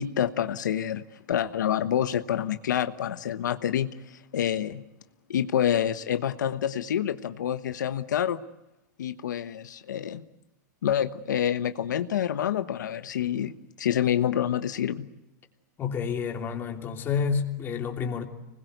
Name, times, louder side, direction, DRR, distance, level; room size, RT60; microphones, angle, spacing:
voice 1, 0.0-4.8 5.3-8.4 9.0-10.2 10.8-13.5 13.8-15.1, left 10 dB, 85° left, 1.2 m, -27 dB
voice 2, 15.8-18.3, left 6 dB, 20° left, 3.0 m, -29 dB
26.5 x 21.0 x 8.2 m
supercardioid pair, 150°, 10 cm